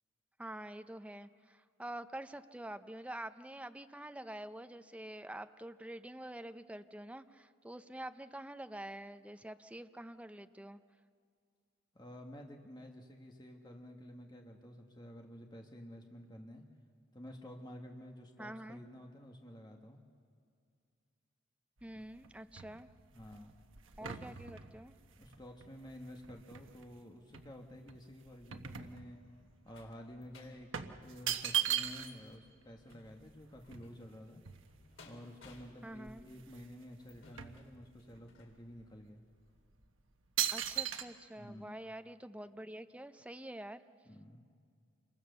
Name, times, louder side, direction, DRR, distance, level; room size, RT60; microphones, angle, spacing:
voice 1, 0.4-10.8 18.4-18.8 21.8-22.9 24.0-24.9 35.8-36.2 40.5-43.8, right 1 dB, 5° right, 10 dB, 0.6 m, -47 dB
voice 2, 11.9-16.6 17.1-20.0 23.1-23.5 24.0-24.2 25.2-29.2 29.6-34.4 35.0-39.2 41.3-41.7 44.0-44.4, equal, 20° left, 2 dB, 1.6 m, -51 dB
sound 1, 21.8-26.9 27.3-29.5 29.8-30.0 30.7-32.3 32.6-32.7 32.9-35.1 35.6-35.7 36.0-36.7 37.0-38.2 38.8-39.0 39.6-39.8 40.4-41.0, right 10 dB, 80° right, 1.2 m, -39 dB
sound 2, 28.9-38.6 39.1-39.3 39.6-39.7, left 2 dB, 90° left, 3.9 m, -62 dB
27.5 x 23.0 x 6.8 m, 2.3 s
head